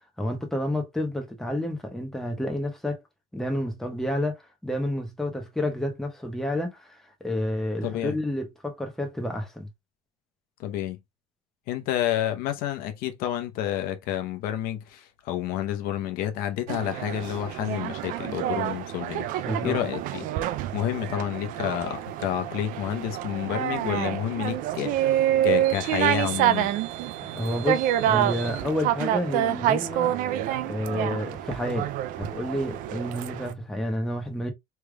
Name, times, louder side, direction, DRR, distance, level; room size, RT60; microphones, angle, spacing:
voice 1, 0.2-3.0 3.3-9.7 19.4-19.8 27.3-30.1 30.7-31.9 32.2-34.5, left 1 dB, ahead, 0.9 m, -30 dB
voice 2, 7.8-8.1 10.6-11.0 11.7-20.3 20.7-26.8, left 12 dB, 70° left, 0.8 m, -30 dB
sound 1, 16.7-33.5, right 12 dB, 60° right, 0.4 m, -27 dB
3.3 x 3.3 x 2.2 m
cardioid pair, 130°, 16 cm